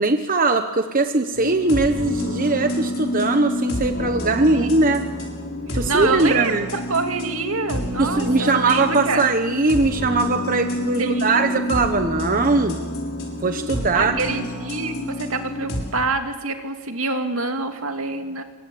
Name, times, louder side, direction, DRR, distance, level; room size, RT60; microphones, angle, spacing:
voice 1, 0.0-5.0 5.7-6.7 8.0-12.8 13.4-14.2, right 3 dB, 40° right, 7 dB, 1.2 m, -20 dB
sound 1, 1.3-15.8, left 1 dB, 65° left, 6.8 m, -28 dB
voice 2, 4.5-5.0 5.7-9.2 11.0-11.7 13.9-18.4, right 3 dB, 75° right, 6 dB, 2.5 m, -26 dB
26.5 x 24.0 x 8.7 m, 1.3 s
head